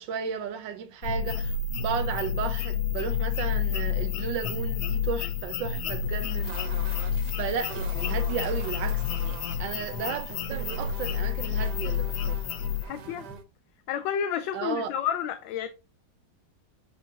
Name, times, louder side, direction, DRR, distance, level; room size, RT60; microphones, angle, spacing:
voice 1, 0.0-6.6 7.4-12.4 14.5-14.9, right 7 dB, 85° right, 1.6 m, -34 dB
sound 1, 1.0-12.8, left 7 dB, 70° left, 0.9 m, -29 dB
sound 2, 6.0-13.4, right 6 dB, 65° right, 1.4 m, -44 dB
voice 2, 12.8-13.3 13.9-15.7, left 9 dB, 90° left, 1.4 m, -30 dB
7.1 x 5.2 x 2.8 m
omnidirectional pair, 2.0 m